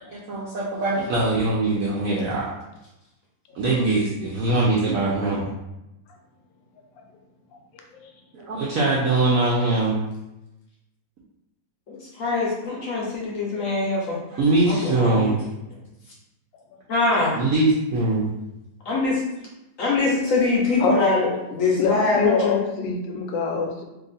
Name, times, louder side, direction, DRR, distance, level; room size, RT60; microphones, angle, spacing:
voice 1, 0.1-2.4 3.5-5.4 8.3-10.0 14.4-15.4 17.3-18.3, right 2 dB, 75° right, -5 dB, 0.8 m, -22 dB
voice 2, 11.9-14.2 14.7-15.4 16.9-17.4 18.8-19.2 19.8-22.5, left 3 dB, 60° left, -4 dB, 0.9 m, -23 dB
voice 3, 20.8-21.3 21.8-23.8, left 5 dB, 80° left, 3 dB, 1.2 m, -24 dB
2.9 x 2.5 x 3.9 m, 0.94 s
omnidirectional pair, 2.1 m